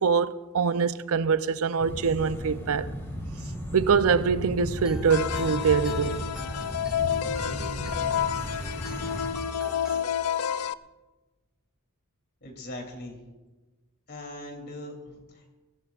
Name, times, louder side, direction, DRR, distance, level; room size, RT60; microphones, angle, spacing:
voice 1, 0.0-2.9 3.7-6.2, right 5 dB, 70° right, 0.6 m, -24 dB
sound 1, 1.8-9.3, equal, 10° left, 3.3 m, -36 dB
sound 2, 4.8-10.0, equal, 5° right, 1.4 m, -44 dB
sound 3, 5.1-10.7, left 9 dB, 90° left, 0.4 m, -30 dB
voice 2, 12.4-13.2 14.1-15.5, left 1 dB, 50° left, 2.9 m, -40 dB
23.0 x 16.5 x 2.4 m
head